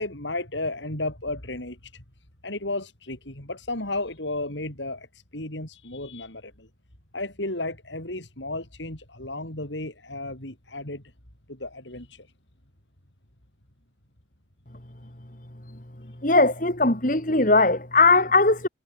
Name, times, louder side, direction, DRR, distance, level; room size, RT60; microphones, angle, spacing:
voice 1, 0.0-2.0 2.4-6.7 7.1-11.0 11.5-12.3, left 2 dB, 75° left, 6.1 m, -33 dB
voice 2, 16.2-18.7, left 3 dB, 45° left, 3.2 m, -19 dB
head